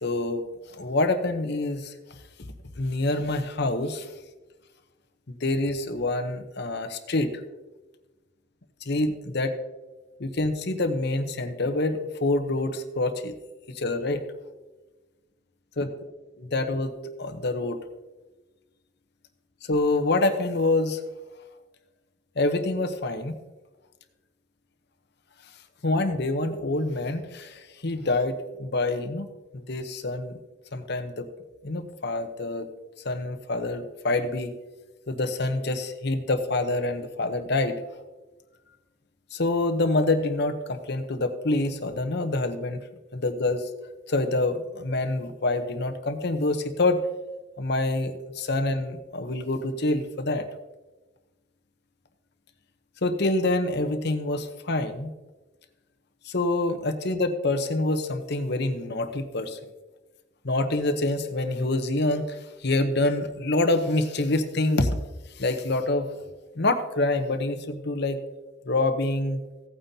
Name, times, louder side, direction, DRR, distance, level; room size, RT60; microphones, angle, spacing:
voice 1, 0.0-1.9 2.8-4.1 5.3-7.3 8.8-9.5 10.2-13.3 13.7-14.2 15.8-15.9 16.4-17.8 19.6-21.0 22.4-23.3 25.8-29.3 29.5-30.3 30.7-31.3 31.6-32.7 33.0-34.5 35.1-37.8 39.3-42.8 43.1-43.7 44.1-47.0 47.6-50.5 53.0-55.1 56.2-59.6 60.4-64.9 65.4-66.1 66.6-68.2 68.6-69.4, left 2 dB, 55° left, 8 dB, 0.9 m, -26 dB
16.5 x 9.0 x 2.8 m, 1.2 s
head